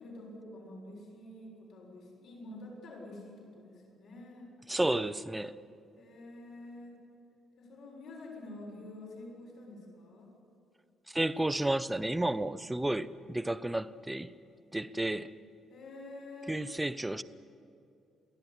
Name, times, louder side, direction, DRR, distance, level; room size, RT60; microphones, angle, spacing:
voice 1, 0.0-4.5 5.9-7.0 7.6-10.3 15.7-16.8, left 2 dB, 70° left, 6.8 m, -48 dB
voice 2, 4.7-5.6 11.1-14.3 14.7-15.3 16.5-17.2, right 1 dB, 10° right, 0.5 m, -32 dB
23.0 x 15.5 x 9.9 m
cardioid pair, 135°, 0 cm